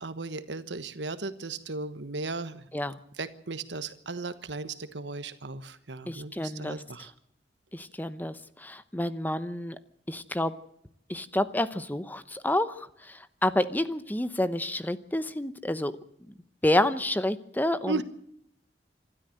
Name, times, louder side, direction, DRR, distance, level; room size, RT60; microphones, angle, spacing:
voice 1, 0.0-2.7 3.2-7.1 17.9-18.0, right 3 dB, 85° right, 12 dB, 1.3 m, -36 dB
voice 2, 6.1-6.8 7.7-9.8 10.1-10.5 11.1-15.9 16.3-16.4 16.6-18.0, left 1 dB, 10° left, 13 dB, 0.9 m, -29 dB
26.0 x 13.0 x 7.8 m, 0.73 s
head